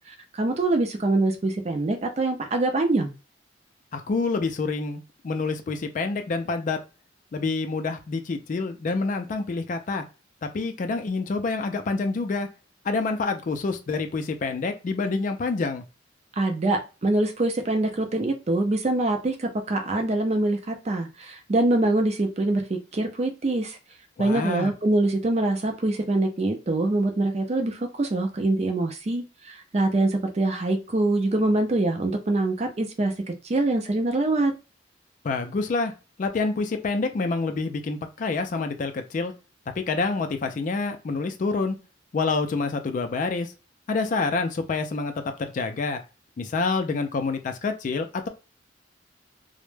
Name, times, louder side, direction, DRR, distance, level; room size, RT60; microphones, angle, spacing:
voice 1, 0.1-3.1 16.4-23.8 24.2-33.1 33.4-34.5, right 2 dB, 35° right, 0.4 m, -24 dB
voice 2, 3.9-6.8 7.3-10.0 10.4-12.5 12.8-15.8 24.2-24.7 35.2-35.9 36.2-39.3 39.8-41.8 42.1-43.5 43.9-45.1 45.4-46.0 46.4-48.3, left 3 dB, 45° left, 0.3 m, -27 dB
2.1 x 2.0 x 3.1 m
head